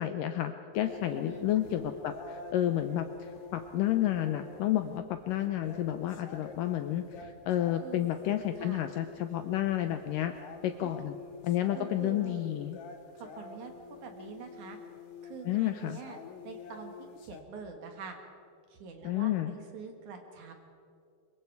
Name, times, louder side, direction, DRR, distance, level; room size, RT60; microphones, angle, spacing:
voice 1, 0.0-10.3 10.6-11.2 11.4-12.8 15.5-16.0 19.0-19.6, left 12 dB, 80° left, 8 dB, 2.0 m, -31 dB
sound 1, 0.7-17.4, left 5 dB, 60° left, 2.1 m, -47 dB
voice 2, 1.1-1.5 7.8-8.1 8.6-8.8 10.8-11.0 11.7-12.3 13.2-13.7 14.0-14.8 15.2-16.2 16.4-16.9 17.2-18.2 18.7-20.5, right 5 dB, 60° right, 4 dB, 2.7 m, -45 dB
24.5 x 22.5 x 4.7 m, 2.4 s
omnidirectional pair, 4.5 m